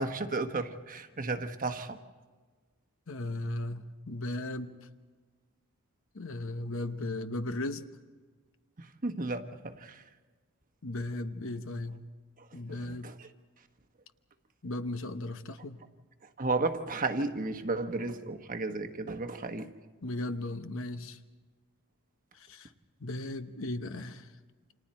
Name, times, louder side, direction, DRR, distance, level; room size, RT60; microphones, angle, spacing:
voice 1, 0.0-2.0 8.8-10.0 12.9-13.3 16.4-19.7, right 3 dB, 40° right, 7 dB, 1.2 m, -33 dB
voice 2, 3.1-4.8 6.1-7.8 10.8-12.0 12.5-13.1 14.6-15.8 20.0-21.2 22.3-22.7 23.0-24.3, left 2 dB, 65° left, 9 dB, 1.0 m, -36 dB
29.5 x 27.0 x 4.4 m, 1.4 s
head